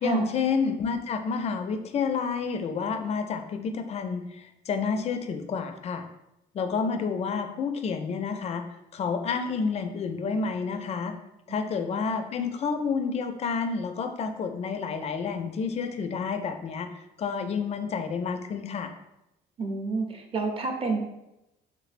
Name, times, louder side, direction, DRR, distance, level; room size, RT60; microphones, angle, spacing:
voice 1, 0.0-6.0 6.5-8.6 8.9-11.2 11.5-16.9 17.2-18.9, left 5 dB, 40° left, 7 dB, 0.4 m, -29 dB
voice 2, 11.5-12.0 19.6-21.0, right 3 dB, 35° right, 2 dB, 0.6 m, -30 dB
3.2 x 3.1 x 2.5 m, 0.90 s
cardioid pair, 110°, 17 cm